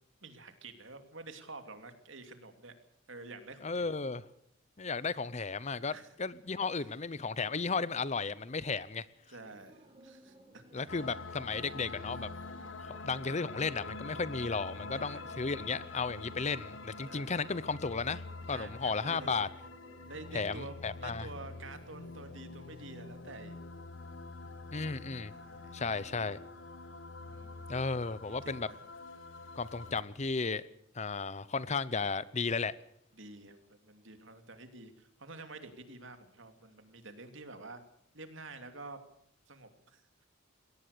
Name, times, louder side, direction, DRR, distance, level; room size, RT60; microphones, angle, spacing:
voice 1, 0.2-2.7 3.1-4.0 5.9-6.1 9.3-10.9 14.9-15.3 17.0-17.4 18.5-19.5 20.1-23.6 25.3-25.8 27.2-27.7 28.4-28.8 33.1-37.8 38.1-39.0 39.5-40.0, right 2 dB, 60° right, 7 dB, 2.9 m, -49 dB
voice 2, 3.6-4.2 4.8-9.1 10.7-12.3 12.8-18.2 18.5-19.5 20.3-21.3 24.7-25.3 25.7-26.4 27.7-28.7 29.6-30.6 30.9-32.7, left 4 dB, 35° left, 18 dB, 0.7 m, -34 dB
sound 1, 8.5-26.9, right 1 dB, 25° right, 3.8 m, -60 dB
sound 2, 10.9-30.0, left 3 dB, 65° left, 1.4 m, -46 dB
21.5 x 18.0 x 6.8 m, 0.73 s
head